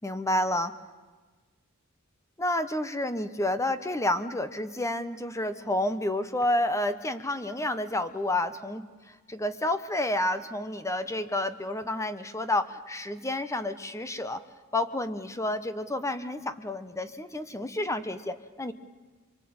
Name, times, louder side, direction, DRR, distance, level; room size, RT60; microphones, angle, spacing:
voice 1, 0.0-0.7 2.4-14.4 14.7-18.7, left 1 dB, 15° left, 11 dB, 1.1 m, -30 dB
25.5 x 23.5 x 8.8 m, 1.3 s
head